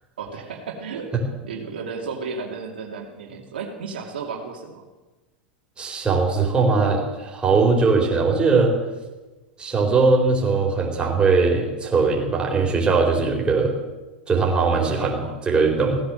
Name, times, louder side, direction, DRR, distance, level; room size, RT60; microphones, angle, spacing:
voice 1, 0.2-4.8 14.8-15.4, right 5 dB, 85° right, 1 dB, 2.6 m, -34 dB
voice 2, 5.8-8.7 9.6-13.7 14.3-16.0, right 4 dB, 20° right, 0 dB, 4.3 m, -20 dB
17.0 x 9.9 x 7.7 m, 1.2 s
hypercardioid pair, 110°, 5 cm